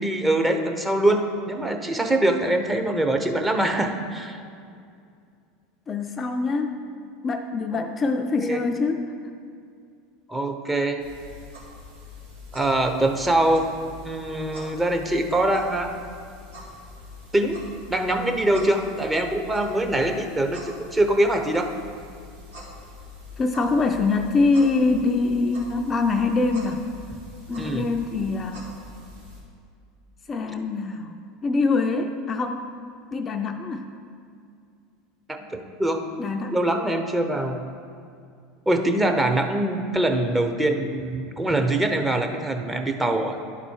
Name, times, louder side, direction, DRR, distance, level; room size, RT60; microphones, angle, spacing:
voice 1, 0.0-4.4 7.7-7.9 8.4-8.6 10.3-11.0 12.5-13.7 14.0-15.9 17.3-17.6 17.9-21.7 27.6-27.8 35.3-35.4 35.8-36.0 36.5-37.6 38.7-43.4, right 1 dB, 15° right, 4 dB, 0.8 m, -23 dB
voice 2, 5.9-6.8 7.2-9.0 23.4-26.8 27.5-28.7 30.3-32.7 33.1-33.9 36.2-36.6, left 3 dB, 30° left, 5 dB, 0.5 m, -24 dB
sound 1, 11.0-29.4, left 3 dB, 85° right, 1.9 m, -44 dB
11.0 x 4.2 x 4.6 m, 2.3 s
hypercardioid pair, 90°, 0 cm